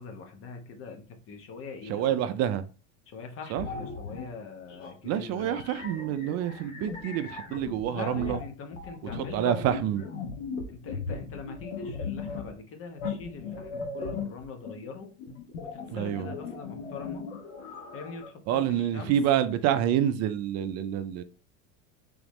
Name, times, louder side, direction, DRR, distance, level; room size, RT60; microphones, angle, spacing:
voice 1, 0.0-2.2 3.1-5.6 7.9-10.0 10.7-15.1 15.6-17.3 17.9-19.2, left 4 dB, 35° left, 1.0 m, -42 dB
voice 2, 1.9-2.6 3.5-3.7 5.0-8.4 9.2-10.0 15.9-16.3 18.5-21.2, right 10 dB, 45° right, 0.5 m, -27 dB
sound 1, 3.6-4.3 4.7-4.9 5.4-12.6 13.0-18.3, left 4 dB, 85° left, 1.3 m, -38 dB
3.9 x 3.5 x 3.1 m
supercardioid pair, 125°, 37 cm